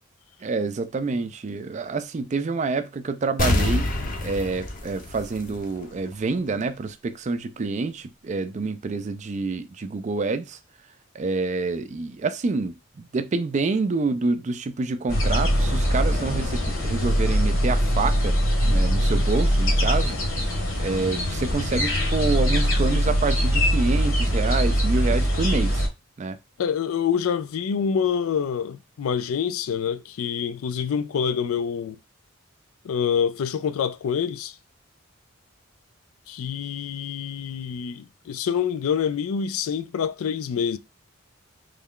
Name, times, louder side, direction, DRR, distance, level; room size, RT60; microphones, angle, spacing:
voice 1, 0.4-3.9 4.2-10.6 11.1-18.4 18.7-20.2 20.8-25.8 26.2-26.4, right 3 dB, 35° right, 0.3 m, -27 dB
sound 1, 3.4-6.0 6.3-6.4, left 1 dB, 40° left, 0.6 m, -26 dB
sound 2, 15.1-25.9, equal, 65° left, 1.2 m, -22 dB
voice 2, 26.6-32.0 32.8-34.5 36.3-40.8, left 7 dB, 85° left, 0.4 m, -26 dB
3.2 x 2.3 x 3.6 m
head